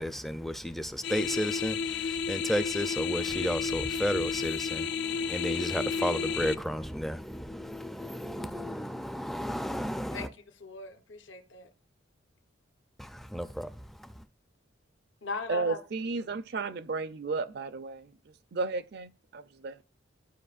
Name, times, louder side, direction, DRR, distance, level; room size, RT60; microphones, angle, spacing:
voice 1, 0.0-10.3 13.0-14.2, equal, ahead, 0.4 m, -33 dB
sound 1, 1.0-6.5, left 6 dB, 60° left, 0.4 m, -32 dB
voice 2, 10.6-11.7 15.2-15.8, left 4 dB, 80° left, 0.9 m, -38 dB
voice 3, 15.5-19.8, right 4 dB, 55° right, 0.5 m, -34 dB
12.5 x 4.9 x 2.4 m
head